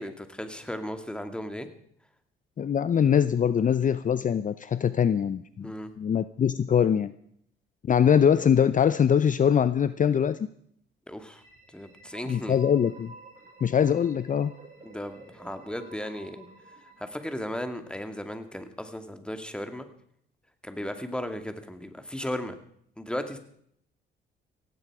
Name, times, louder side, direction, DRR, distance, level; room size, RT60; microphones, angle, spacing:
voice 1, 0.0-1.7 5.6-5.9 11.1-11.4 11.7-12.6 14.8-16.5 17.0-19.9 20.6-22.6 23.0-23.4, left 1 dB, 5° left, 7 dB, 2.3 m, -35 dB
voice 2, 2.6-5.7 6.0-7.1 7.8-10.4 12.3-13.1 13.6-14.5, left 8 dB, 40° left, 14 dB, 0.7 m, -23 dB
sound 1, 11.3-18.1, right 3 dB, 40° right, 7.0 m, -51 dB
17.0 x 16.5 x 4.9 m, 0.67 s
cardioid pair, 90°, 20 cm